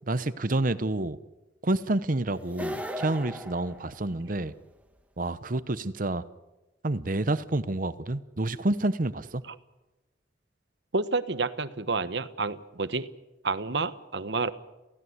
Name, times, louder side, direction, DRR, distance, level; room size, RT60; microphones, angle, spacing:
voice 1, 0.1-1.2 1.6-4.5 5.2-6.2 6.8-9.4, right 2 dB, 45° right, 0.9 m, -28 dB
sound 1, 2.5-4.5, equal, 10° right, 1.7 m, -37 dB
voice 2, 10.9-13.1 13.4-14.5, right 3 dB, 65° right, 1.2 m, -29 dB
28.0 x 16.5 x 8.1 m
head